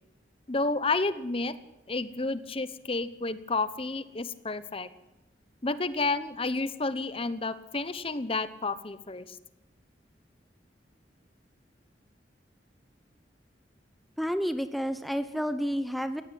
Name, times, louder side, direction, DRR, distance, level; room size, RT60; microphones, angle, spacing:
voice 1, 0.5-1.5 1.9-4.9 5.6-9.4, left 3 dB, 30° left, 14 dB, 1.1 m, -30 dB
voice 2, 14.2-16.2, equal, ahead, 10 dB, 0.9 m, -30 dB
19.0 x 16.0 x 9.2 m, 0.97 s
head